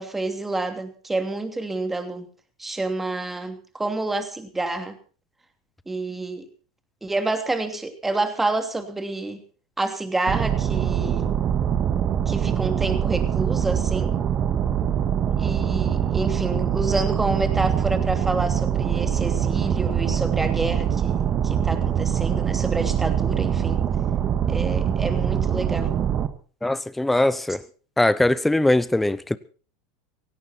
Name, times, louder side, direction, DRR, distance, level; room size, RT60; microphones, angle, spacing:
voice 1, 0.0-2.3 2.6-5.0 5.9-6.5 7.0-9.4 9.8-11.3 12.3-14.2 15.4-23.8 24.5-25.9, right 2 dB, 10° right, 2.9 m, -28 dB
sound 1, 10.3-26.3, right 9 dB, 40° right, 1.9 m, -23 dB
voice 2, 26.6-27.6 28.0-29.4, left 1 dB, 5° left, 0.7 m, -21 dB
17.0 x 17.0 x 4.5 m
hypercardioid pair, 95°, 2 cm